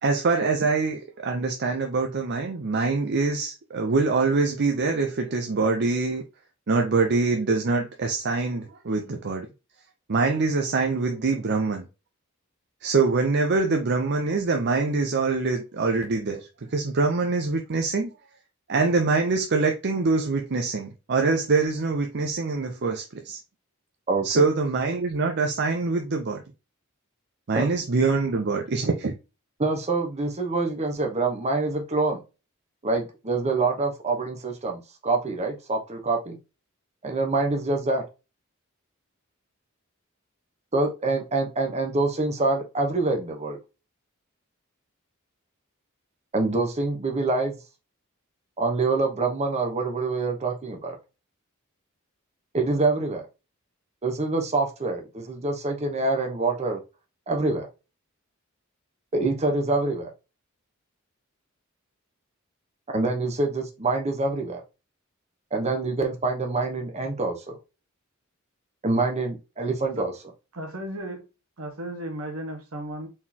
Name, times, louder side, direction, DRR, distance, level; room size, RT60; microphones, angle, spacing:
voice 1, 0.0-6.2 6.7-9.5 10.1-11.9 12.8-18.1 18.7-23.4 24.2-26.4 27.5-29.1, right 3 dB, 55° right, 0.6 m, -24 dB
voice 2, 24.1-24.4 27.5-27.6 29.6-32.2 32.8-36.4 37.0-38.0 40.7-43.6 46.3-47.6 48.6-51.0 52.5-53.2 54.0-56.8 57.3-57.7 59.1-60.1 62.9-64.6 65.5-67.6 68.8-70.1, right 3 dB, 30° right, 1.0 m, -26 dB
voice 3, 70.5-71.3 71.6-73.1, right 1 dB, 90° right, 1.4 m, -35 dB
4.3 x 3.7 x 2.8 m
head